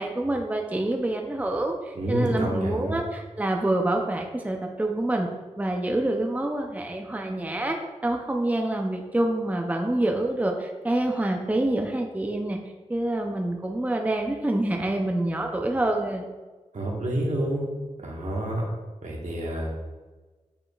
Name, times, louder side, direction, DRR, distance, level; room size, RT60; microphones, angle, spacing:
voice 1, 0.0-5.3 5.6-7.8 8.0-12.6 12.9-16.3, right 1 dB, 10° right, 2 dB, 0.6 m, -26 dB
voice 2, 1.9-2.9 16.7-17.7 18.0-18.6 19.0-19.7, right 1 dB, 70° right, -2 dB, 1.5 m, -28 dB
8.6 x 5.0 x 2.4 m, 1.3 s
cardioid pair, 60°, 13 cm